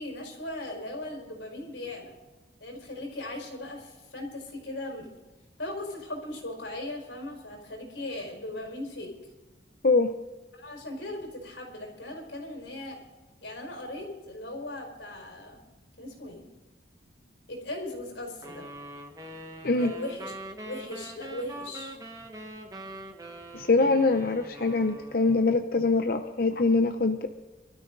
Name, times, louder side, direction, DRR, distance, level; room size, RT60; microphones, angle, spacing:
voice 1, 0.0-2.1 2.6-5.1 5.6-9.1 10.5-13.0 13.4-15.6 16.0-16.5 17.5-18.7 19.8-20.4 20.6-22.0, left 1 dB, 90° left, 1 dB, 4.7 m, -38 dB
voice 2, 9.8-10.1 19.6-19.9 23.5-27.3, left 3 dB, 50° left, 6 dB, 0.7 m, -23 dB
sound 1, 18.4-25.6, right 1 dB, 20° right, 1.4 m, -43 dB
23.0 x 13.0 x 3.9 m, 1.2 s
head